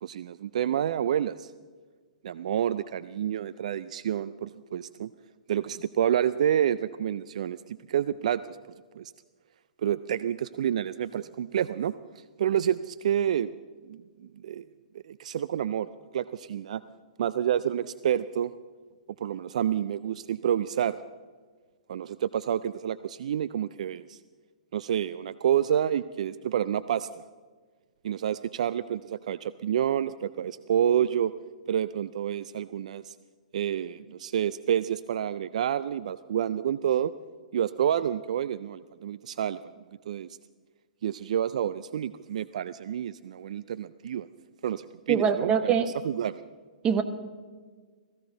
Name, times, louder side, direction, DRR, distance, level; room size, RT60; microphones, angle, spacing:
voice 1, 0.0-1.5 2.2-5.1 5.5-8.4 9.0-9.1 9.8-13.5 13.9-14.6 15.0-16.8 17.2-18.5 19.2-21.0 21.9-24.2 24.7-27.1 28.0-31.3 31.7-33.1 33.5-37.1 37.5-39.6 40.1-40.3 41.0-44.3 44.6-45.7 46.0-46.4, right 9 dB, 60° right, 15 dB, 0.4 m, -28 dB
voice 2, 45.1-45.9 46.8-47.0, right 7 dB, 25° right, 9 dB, 1.1 m, -23 dB
18.0 x 15.5 x 3.9 m, 1.5 s
figure-of-eight pair, 115°, 4 cm